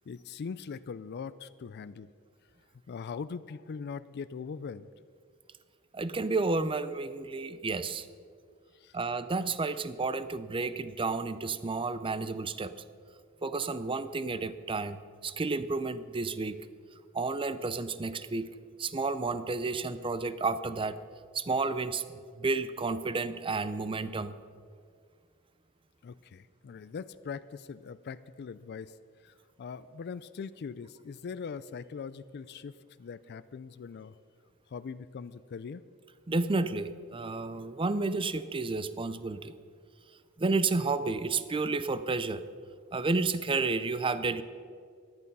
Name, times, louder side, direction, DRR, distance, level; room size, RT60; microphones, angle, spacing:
voice 1, 0.1-2.1 2.9-4.9 8.7-9.0 26.0-29.0 29.2-34.2 34.7-35.8, left 5 dB, 50° left, 15 dB, 0.4 m, -41 dB
voice 2, 5.9-8.1 8.9-12.7 13.4-16.6 17.1-18.5 18.8-21.0 21.3-24.3 36.3-39.5 40.4-42.4 42.9-44.4, right 3 dB, 25° right, 13 dB, 0.5 m, -31 dB
14.0 x 11.0 x 5.4 m, 2.1 s
head